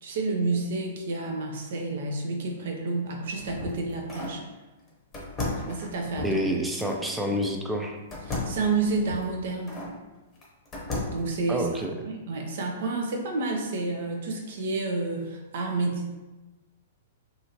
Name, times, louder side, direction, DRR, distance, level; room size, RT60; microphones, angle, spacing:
voice 1, 0.0-4.4 5.7-6.4 8.3-9.8 11.1-16.1, right 3 dB, 60° right, 1 dB, 0.6 m, -30 dB
sound 1, 3.1-4.4 5.1-7.0 8.1-9.9 10.4-11.3, left 2 dB, 20° left, 0.8 m, -35 dB
voice 2, 6.2-8.0 11.5-11.9, equal, 5° right, 1 dB, 0.4 m, -28 dB
2.8 x 2.5 x 2.8 m, 1.1 s
hypercardioid pair, 115°, 0 cm